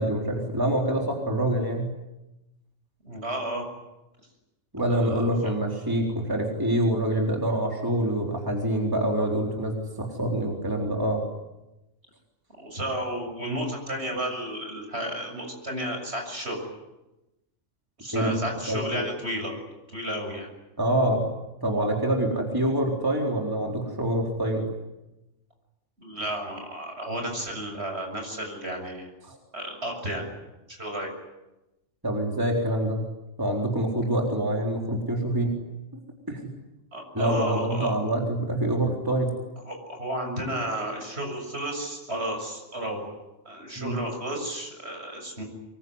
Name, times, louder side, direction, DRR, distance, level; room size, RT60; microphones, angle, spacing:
voice 1, 0.0-1.9 4.7-11.2 18.1-18.4 18.7-19.1 20.8-21.3 21.6-24.7 29.2-29.4 32.0-33.0 33.4-35.6 36.3-36.5 37.1-39.3 43.8-44.0, right 1 dB, 15° right, 0 dB, 4.0 m, -26 dB
voice 2, 3.0-3.6 4.8-5.5 12.6-16.6 18.0-19.5 19.9-20.5 26.0-29.1 29.5-30.3 30.7-31.1 36.9-38.1 39.6-43.1 43.5-45.4, right 1 dB, 55° right, 3 dB, 7.4 m, -32 dB
25.0 x 22.5 x 9.8 m, 0.98 s
omnidirectional pair, 1.3 m